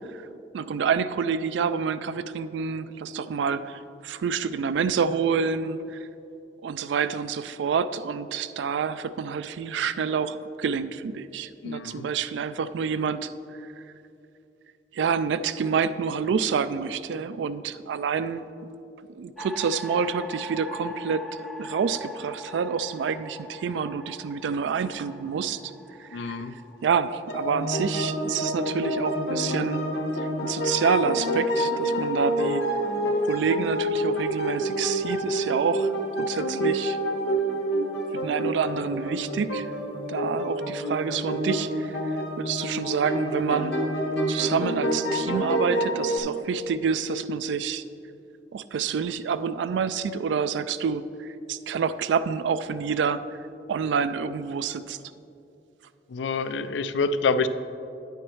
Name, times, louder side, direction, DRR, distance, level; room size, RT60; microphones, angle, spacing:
voice 1, 0.5-6.1 6.6-13.7 14.9-18.4 19.2-25.7 26.0-26.4 26.8-29.8 30.4-32.6 33.2-37.0 38.1-39.7 40.1-43.8 44.3-47.8 48.5-53.4 53.7-55.0, right 6 dB, 85° right, 14 dB, 0.3 m, -28 dB
voice 2, 11.6-12.1 26.1-26.5 56.1-57.5, left 4 dB, 85° left, 12 dB, 0.4 m, -27 dB
sound 1, 19.4-29.7, left 1 dB, ahead, 0.5 m, -42 dB
sound 2, 27.3-46.2, equal, 70° left, 1.2 m, -28 dB
9.8 x 9.0 x 3.1 m, 2.7 s
head